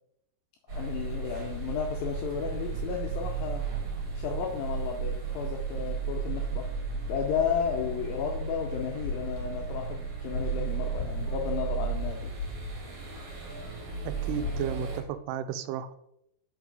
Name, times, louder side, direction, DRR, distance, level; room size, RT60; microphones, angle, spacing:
voice 1, 0.7-3.6 4.2-6.7 7.1-12.3, left 7 dB, 80° left, 2 dB, 2.0 m, -33 dB
sound 1, 0.7-15.0, right 5 dB, 50° right, 2.2 m, -34 dB
sound 2, 9.0-9.4 10.3-11.4 12.4-13.5 14.4-14.8, left 4 dB, 45° left, 1.6 m, -38 dB
voice 2, 14.3-16.0, right 9 dB, 90° right, 11 dB, 2.7 m, -33 dB
5.3 x 4.7 x 5.1 m, 0.78 s
omnidirectional pair, 4.7 m